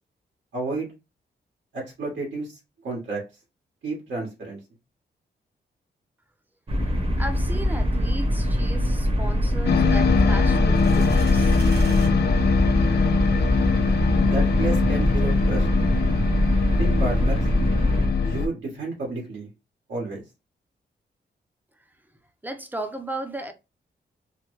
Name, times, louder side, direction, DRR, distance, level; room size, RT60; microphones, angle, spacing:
voice 1, 0.5-0.9 1.7-3.2 3.8-4.6 14.2-15.7 16.8-17.4 18.2-19.5 19.9-20.2, right 3 dB, 90° right, 1.6 m, -31 dB
sound 1, 6.7-18.1, equal, 30° right, 0.8 m, -23 dB
voice 2, 6.8-11.6 22.4-23.5, right 1 dB, 10° right, 0.5 m, -35 dB
sound 2, 9.7-18.5, left 5 dB, 60° left, 0.5 m, -22 dB
sound 3, 10.6-12.1, right 4 dB, 60° right, 0.9 m, -41 dB
3.2 x 2.2 x 3.1 m
wide cardioid pair, 130°, 18 cm